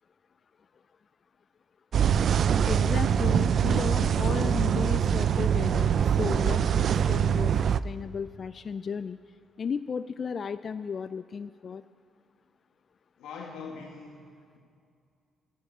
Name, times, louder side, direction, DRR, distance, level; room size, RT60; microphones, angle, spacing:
sound 1, 1.9-7.8, right 8 dB, 60° right, 0.3 m, -24 dB
voice 1, 2.7-9.2 9.6-11.8, left 6 dB, 45° left, 13 dB, 0.3 m, -34 dB
voice 2, 13.2-14.6, left 5 dB, 85° left, 0 dB, 1.3 m, -42 dB
12.0 x 9.4 x 9.3 m, 2.4 s
cardioid pair, 90°, 0 cm